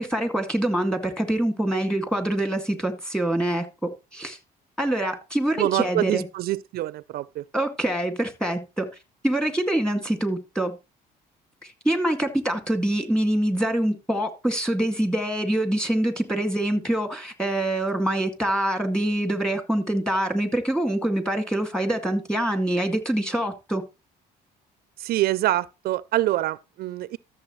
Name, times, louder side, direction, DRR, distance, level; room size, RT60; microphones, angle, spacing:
voice 1, 0.0-4.4 4.8-6.2 7.5-8.9 9.2-10.8 11.6-23.8, right 1 dB, 5° left, 2.0 m, -25 dB
voice 2, 5.6-7.4 25.0-27.2, right 15 dB, 65° right, 0.4 m, -25 dB
13.5 x 6.8 x 3.1 m
cardioid pair, 110°, 17 cm